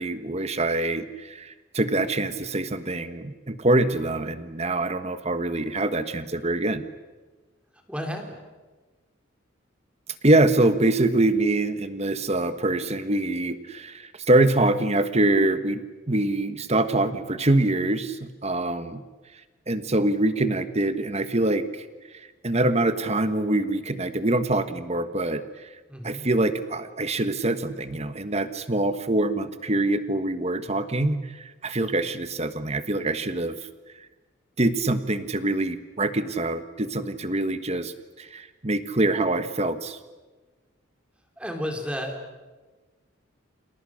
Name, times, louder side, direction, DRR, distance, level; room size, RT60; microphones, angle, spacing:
voice 1, 0.0-6.8 10.2-19.0 19.7-21.8 22.4-25.4 26.0-33.5 34.6-37.9 38.2-40.0, right 2 dB, 35° right, 11 dB, 1.5 m, -24 dB
voice 2, 7.9-8.4 25.9-26.2 41.4-42.2, equal, 5° right, 3 dB, 3.8 m, -32 dB
29.0 x 28.5 x 6.5 m, 1.3 s
head